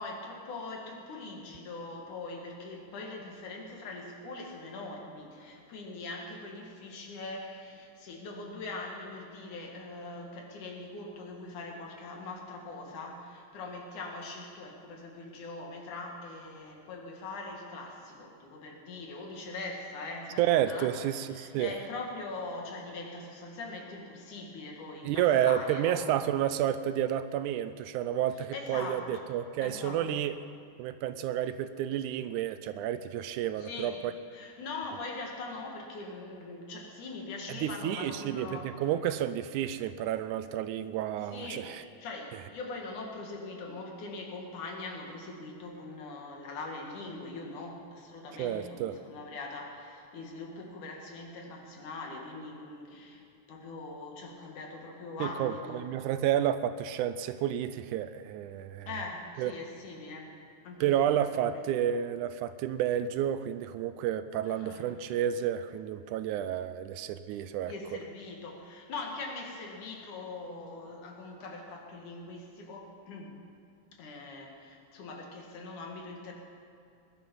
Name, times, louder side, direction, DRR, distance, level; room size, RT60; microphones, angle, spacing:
voice 1, 0.0-20.9 21.3-26.0 28.5-29.1 29.6-30.1 33.6-34.0 34.3-38.8 41.3-41.7 42.0-55.9 58.9-60.3 60.6-61.8 64.4-64.8 65.1-65.2 67.7-73.4 74.0-76.3, left 3 dB, 70° left, 1 dB, 3.3 m, -42 dB
voice 2, 20.4-21.8 25.0-30.4 30.8-34.1 37.5-41.8 48.4-49.0 55.2-58.9 59.4-59.5 60.8-67.7, right 10 dB, 80° right, 12 dB, 1.9 m, -30 dB
20.5 x 11.5 x 5.4 m, 2.5 s
omnidirectional pair, 3.7 m